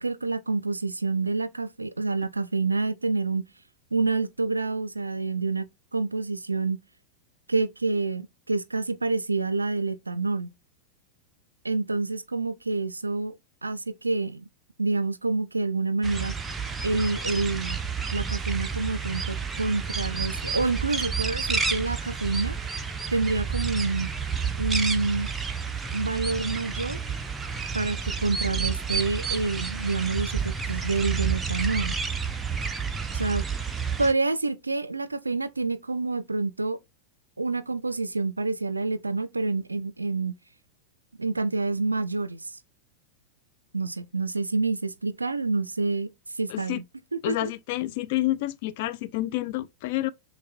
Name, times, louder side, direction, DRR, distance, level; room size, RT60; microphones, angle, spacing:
voice 1, 0.0-3.5 3.9-5.7 5.9-6.8 7.5-10.5 11.6-13.3 13.6-14.5 14.8-16.3 16.8-17.8 18.1-22.6 23.1-24.1 24.6-25.3 25.9-27.0 27.7-32.0 33.1-33.4 34.0-36.8 37.4-40.4 41.2-42.5 43.7-46.1 46.4-46.8 47.1-47.5, right 3 dB, 80° right, 0.4 m, -27 dB
sound 1, 16.0-34.1, right 5 dB, 15° right, 0.5 m, -30 dB
voice 2, 46.5-46.8 47.2-50.1, left 16 dB, 50° left, 0.3 m, -29 dB
6.2 x 2.1 x 2.5 m
figure-of-eight pair, 90°, 0 cm